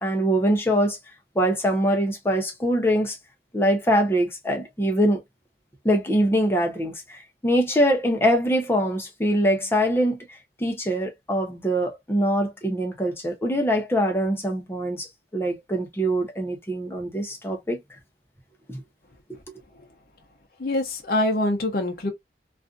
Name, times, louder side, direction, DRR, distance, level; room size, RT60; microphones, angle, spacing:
voice 1, 0.0-1.0 1.3-3.2 3.5-5.2 5.8-10.2 10.6-17.8 18.7-18.8, equal, 15° left, 0.7 m, -23 dB
voice 2, 20.6-22.1, left 1 dB, 55° left, 0.6 m, -24 dB
2.5 x 2.4 x 2.4 m
head